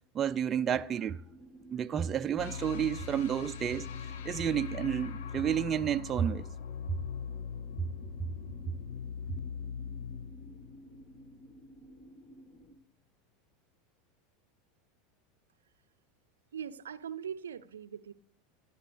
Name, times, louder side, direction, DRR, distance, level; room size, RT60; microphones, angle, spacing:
voice 1, 0.1-1.2 1.7-3.9 4.2-6.5, right 9 dB, 30° right, 0.5 m, -31 dB
sound 1, 1.0-12.8, right 1 dB, 30° left, 1.9 m, -55 dB
sound 2, 2.4-11.5, left 7 dB, 65° left, 0.8 m, -41 dB
voice 2, 16.5-18.1, right 8 dB, 75° right, 0.6 m, -41 dB
25.5 x 11.5 x 3.4 m
figure-of-eight pair, 80°, 0 cm